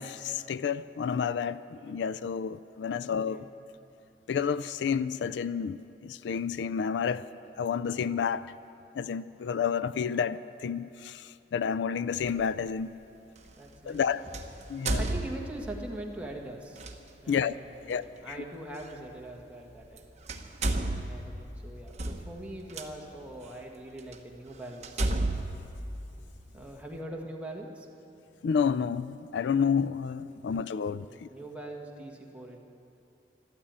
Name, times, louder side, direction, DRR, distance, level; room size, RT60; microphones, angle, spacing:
voice 1, 0.0-3.4 4.3-7.2 7.6-8.5 8.9-12.9 13.9-14.2 14.7-15.0 17.3-17.6 17.9-18.3 28.4-31.3, left 6 dB, 75° left, 0.4 m, -30 dB
voice 2, 2.9-3.5 13.6-14.4 15.0-16.8 17.2-20.1 21.0-25.1 26.5-27.9 30.3-32.6, right 1 dB, 10° right, 1.5 m, -43 dB
sound 1, 12.3-12.4 14.3-15.8 16.8-17.0 18.8-18.9 19.8-20.0 20.3-22.9 23.5-23.6 24.1-24.2 24.8-26.6, right 2 dB, 40° right, 1.0 m, -32 dB
13.0 x 12.5 x 8.8 m
head